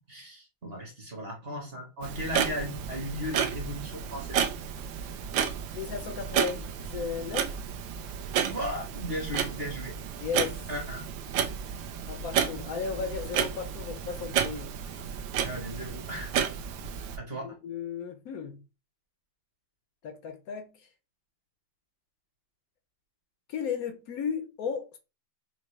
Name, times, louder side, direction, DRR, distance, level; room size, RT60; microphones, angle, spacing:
voice 1, 0.1-4.5 8.4-9.9 10.7-11.0 15.4-16.3 17.1-17.5, equal, 40° right, 1.0 m, -36 dB
Clock, 2.0-17.2, right 8 dB, 75° right, 1.2 m, -32 dB
voice 2, 5.7-7.5 10.2-10.6 12.1-14.7 17.6-18.6 20.0-20.9 23.5-25.0, left 6 dB, 75° left, 0.8 m, -35 dB
5.7 x 2.1 x 3.0 m
omnidirectional pair, 2.2 m